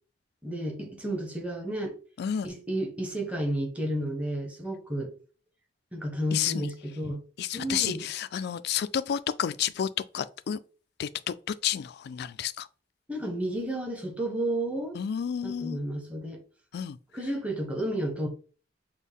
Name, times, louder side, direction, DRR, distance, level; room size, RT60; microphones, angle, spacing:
voice 1, 0.4-1.9 2.4-5.1 5.9-7.2 7.5-8.1 13.1-15.0 15.4-16.4 17.1-18.3, right 1 dB, 5° right, 1.1 m, -31 dB
voice 2, 2.2-2.5 6.3-6.7 7.4-9.9 10.1-10.6 11.0-12.7 15.0-15.8 16.7-17.0, left 9 dB, 60° left, 0.3 m, -30 dB
6.3 x 2.2 x 3.5 m
head